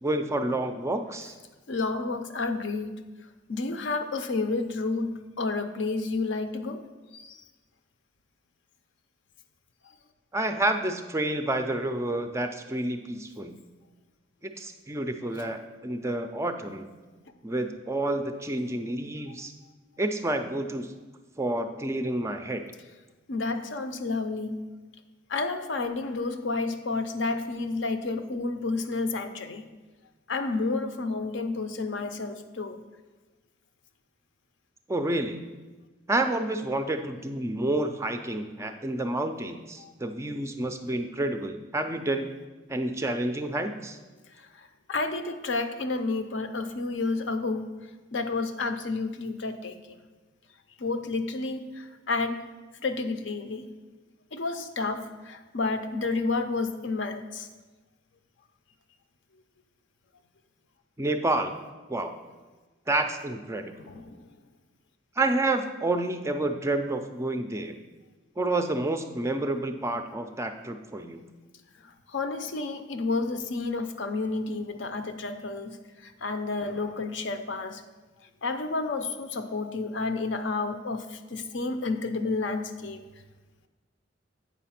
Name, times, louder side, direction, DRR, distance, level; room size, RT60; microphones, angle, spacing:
voice 1, 0.0-1.3 10.3-13.5 14.4-16.9 17.4-19.5 20.0-20.9 21.4-22.6 34.9-35.4 36.1-42.3 42.7-44.0 61.0-61.5 61.9-62.1 62.9-63.9 65.2-67.8 68.4-71.2, right 2 dB, 15° right, 7 dB, 0.4 m, -29 dB
voice 2, 1.7-2.9 3.5-6.8 7.1-7.4 23.3-24.6 25.3-29.6 30.3-32.8 39.8-39.9 44.4-47.7 48.1-50.0 50.8-52.4 52.8-53.7 54.3-57.5 63.8-64.2 71.8-77.8 78.4-83.0, left 3 dB, 65° left, 8 dB, 0.6 m, -30 dB
8.3 x 5.0 x 5.7 m, 1.3 s
head